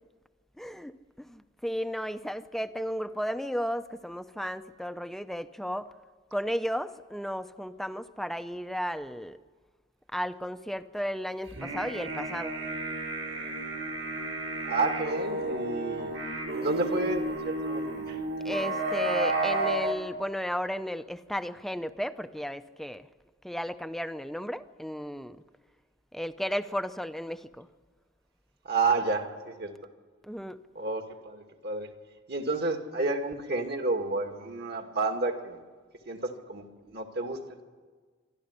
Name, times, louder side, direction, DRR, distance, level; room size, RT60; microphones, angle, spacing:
voice 1, 0.6-5.9 6.3-9.4 10.1-12.5 18.4-23.1 23.4-25.4 26.1-27.7 30.2-30.6, equal, ahead, 11 dB, 0.6 m, -34 dB
sound 1, 11.5-19.9, right 2 dB, 70° right, 4.1 m, -32 dB
voice 2, 14.6-16.1 16.5-18.2 28.6-29.7 30.8-31.9 32.3-35.6 36.1-37.6, right 3 dB, 55° right, 5 dB, 2.3 m, -30 dB
26.0 x 13.0 x 9.8 m, 1.5 s
head